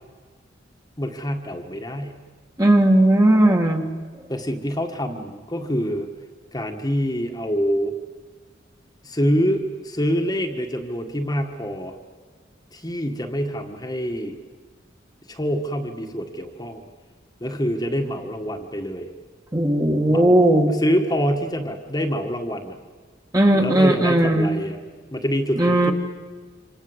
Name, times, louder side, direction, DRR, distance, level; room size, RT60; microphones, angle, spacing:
voice 1, 1.0-2.2 4.3-6.1 6.5-7.9 9.0-12.0 12.7-14.4 15.3-16.8 17.4-19.1 20.1-22.8 23.5-24.8 25.1-25.9, equal, 20° left, 3 dB, 1.8 m, -26 dB
voice 2, 2.6-3.9 19.5-20.7 23.3-24.5 25.6-25.9, right 1 dB, 20° right, 3 dB, 2.0 m, -17 dB
27.5 x 26.5 x 8.1 m, 1.5 s
head